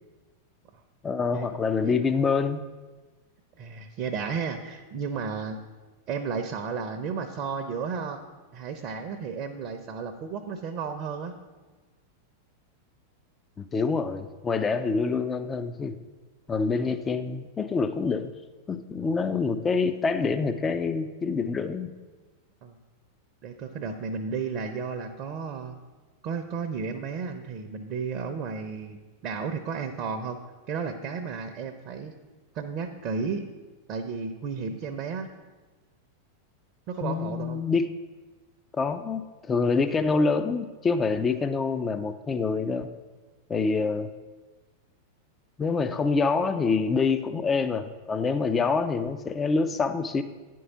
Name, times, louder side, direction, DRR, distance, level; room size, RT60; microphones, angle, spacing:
voice 1, 1.0-2.6 13.6-16.0 16.5-18.3 18.7-21.9 37.0-37.9 38.7-42.9 43.5-44.1 45.6-50.2, left 4 dB, 20° left, 10 dB, 0.5 m, -26 dB
voice 2, 3.6-5.6 6.1-8.2 8.5-11.3 22.6-22.8 23.4-25.8 26.2-30.4 30.7-32.1 32.5-33.5 33.9-35.3 36.9-37.6, right 5 dB, 40° right, 6 dB, 0.7 m, -33 dB
9.9 x 4.6 x 7.0 m, 1.3 s
figure-of-eight pair, 90°, 0 cm